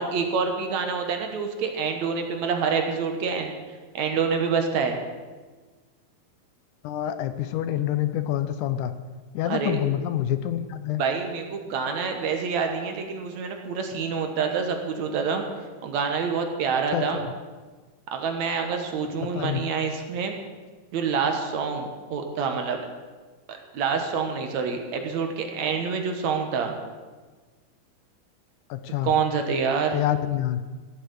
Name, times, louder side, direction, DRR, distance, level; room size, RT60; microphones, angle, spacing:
voice 1, 0.0-3.5 3.9-5.0 9.5-9.8 11.0-15.4 15.8-17.2 18.1-20.4 20.9-22.9 23.5-26.7 29.0-30.0, right 5 dB, 65° right, 4 dB, 2.3 m, -27 dB
voice 2, 6.8-8.9 9.3-11.0 16.7-17.0 19.2-19.6 28.7-29.1 29.9-30.6, left 12 dB, 75° left, 11 dB, 2.1 m, -27 dB
14.5 x 8.3 x 8.0 m, 1.4 s
omnidirectional pair, 3.8 m